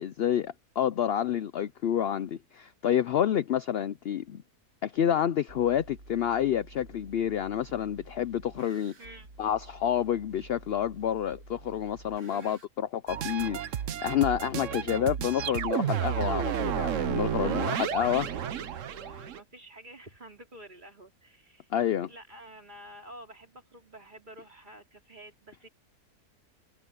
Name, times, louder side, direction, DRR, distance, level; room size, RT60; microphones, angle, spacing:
voice 1, 0.0-4.4 4.8-8.9 9.4-18.3 21.7-22.1, left 10 dB, 65° left, 0.6 m, -29 dB
sound 1, 5.5-12.7, right 2 dB, 75° right, 2.9 m, -51 dB
voice 2, 12.2-12.6 14.8-15.1 17.4-21.7 22.1-25.7, right 1 dB, 30° right, 3.4 m, -49 dB
sound 2, 13.1-19.4, right 9 dB, 60° right, 1.1 m, -31 dB
omnidirectional pair, 1.6 m